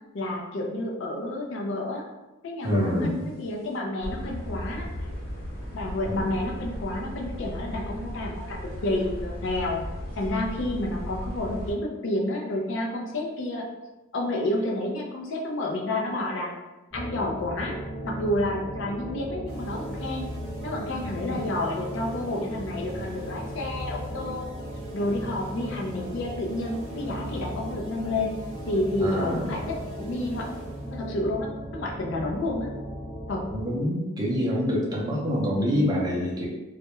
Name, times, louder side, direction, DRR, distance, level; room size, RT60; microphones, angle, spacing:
voice 1, 0.1-2.1 2.4-4.9 5.7-9.8 10.2-13.7 14.1-16.5 16.9-20.3 20.6-24.5 24.9-28.3 28.7-30.5 30.8-32.7 33.3-33.5, left 1 dB, 65° left, -1 dB, 0.4 m, -30 dB
voice 2, 2.6-3.3 6.1-6.3 21.0-21.4 29.0-29.6 33.5-36.5, equal, 20° right, -4 dB, 0.5 m, -26 dB
sound 1, 2.8-3.1 3.6-3.7 4.0-11.7, equal, 90° left, 1.2 m, -36 dB
sound 2, 16.9-33.6, right 1 dB, 20° left, 0.9 m, -37 dB
sound 3, 19.5-31.0, equal, 90° right, 0.7 m, -47 dB
2.2 x 2.1 x 2.9 m, 1.1 s
head